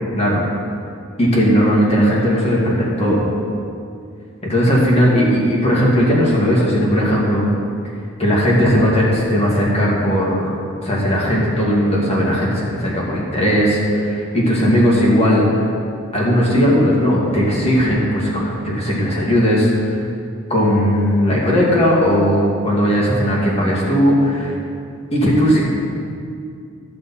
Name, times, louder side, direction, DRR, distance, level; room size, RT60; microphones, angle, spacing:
voice 1, 1.2-3.2 4.4-7.5 8.2-10.5 10.8-15.6 16.1-19.9 20.5-24.5 25.1-25.6, equal, 25° left, -4 dB, 2.0 m, -17 dB
13.5 x 6.7 x 4.2 m, 2.4 s
head